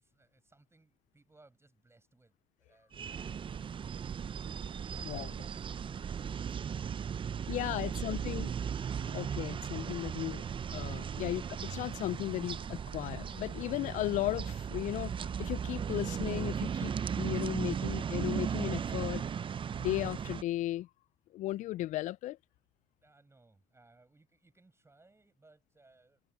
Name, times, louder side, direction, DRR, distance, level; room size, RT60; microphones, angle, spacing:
voice 1, 0.0-2.3 2.6-3.8 4.8-8.7 23.0-26.2, right 2 dB, 20° right, 7.8 m, -65 dB
sound 1, 2.9-20.4, right 7 dB, 40° right, 0.6 m, -36 dB
voice 2, 7.5-8.5 9.0-10.4 10.7-15.1 15.4-19.2 19.8-20.9 21.3-22.4, left 15 dB, 65° left, 0.4 m, -36 dB
supercardioid pair, 70°, 14 cm